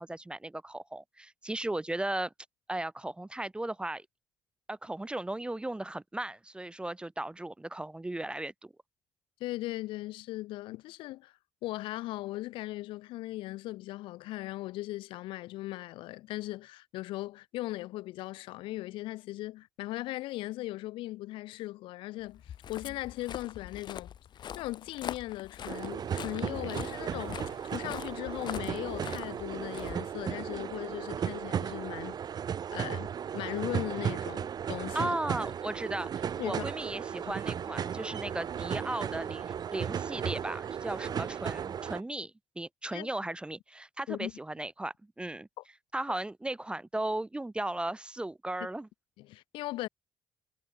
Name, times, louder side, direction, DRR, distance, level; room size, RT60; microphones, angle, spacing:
voice 1, 0.0-2.3 2.7-4.1 4.7-8.7 34.9-45.5 45.9-48.9, right 1 dB, 10° right, 0.6 m, -36 dB
voice 2, 9.4-24.1 24.6-27.4 27.7-32.2 32.7-35.2 36.4-36.7 37.3-37.4 42.9-43.1 44.1-44.3 45.6-45.7 49.2-49.9, left 17 dB, 80° left, 1.6 m, -38 dB
Walk footsteps, 22.3-30.6, left 9 dB, 60° left, 5.5 m, -43 dB
sound 1, 25.7-42.0, right 8 dB, 50° right, 1.8 m, -35 dB
supercardioid pair, 70°, 9 cm